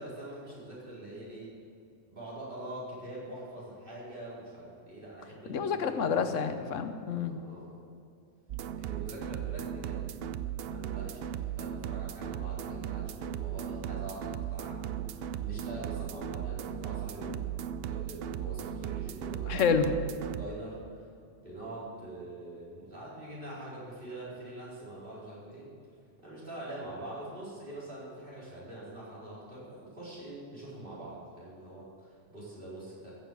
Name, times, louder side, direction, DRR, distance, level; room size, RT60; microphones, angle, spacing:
voice 1, 0.0-1.6 2.1-6.2 7.2-7.8 8.8-10.2 10.7-17.3 17.8-19.6 20.4-21.1 21.4-25.7 26.2-33.2, right 1 dB, 45° right, -8 dB, 4.7 m, -44 dB
voice 2, 5.5-7.4 17.3-17.4 19.5-19.9, left 6 dB, 85° left, 9 dB, 1.2 m, -28 dB
sound 1, 8.5-20.4, right 10 dB, 65° right, 0.7 m, -37 dB
15.0 x 7.1 x 7.6 m, 2.3 s
omnidirectional pair, 1.3 m